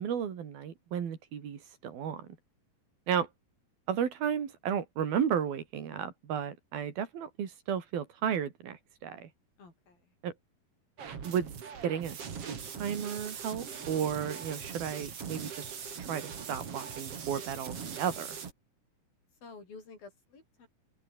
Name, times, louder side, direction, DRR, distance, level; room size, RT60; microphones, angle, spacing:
voice 1, 0.0-2.3 3.1-3.3 3.9-9.3 10.2-10.3 11.2-11.5 11.8-12.2 12.5-18.4, right 8 dB, 85° right, 4.8 m, -33 dB
voice 2, 9.6-10.1 19.4-20.7, left 4 dB, 80° left, 9.2 m, -51 dB
sound 1, 11.0-18.5, right 6 dB, 45° right, 3.2 m, -41 dB
open air
omnidirectional pair, 4.1 m